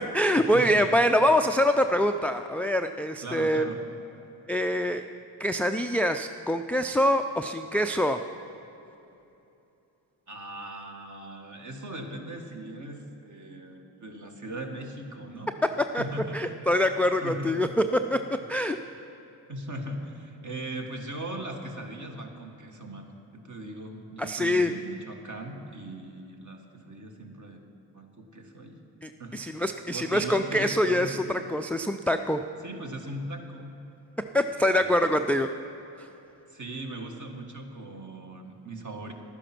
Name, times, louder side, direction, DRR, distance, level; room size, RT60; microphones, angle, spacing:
voice 1, 0.0-3.7 4.5-5.0 5.4-8.2 15.9-16.0 16.3-18.2 18.5-18.8 24.2-24.7 29.0-32.4 34.3-35.5 36.0-36.1, equal, 5° left, 7 dB, 0.4 m, -25 dB
voice 2, 0.5-1.0 3.2-3.8 10.3-15.5 16.0-16.6 17.2-17.5 19.5-27.6 27.9-28.8 29.2-29.6 29.9-31.2 32.6-33.8 34.6-35.1 36.5-39.1, right 1 dB, 40° right, 3 dB, 1.8 m, -39 dB
11.5 x 9.9 x 6.0 m, 2.9 s
hypercardioid pair, 40°, 47 cm